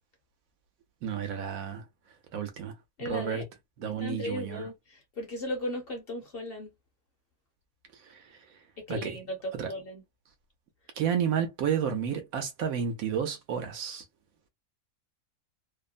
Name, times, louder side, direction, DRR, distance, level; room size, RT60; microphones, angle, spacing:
voice 1, 1.0-1.8 2.3-2.7 3.0-3.4 3.8-4.7 8.1-8.2 8.9-9.2 9.5-9.7 11.0-14.0, right 7 dB, 75° right, 1.1 m, -31 dB
voice 2, 3.0-3.5 4.0-6.7 8.9-10.0, left 1 dB, 50° left, 0.9 m, -36 dB
2.9 x 2.0 x 2.4 m
omnidirectional pair, 1.5 m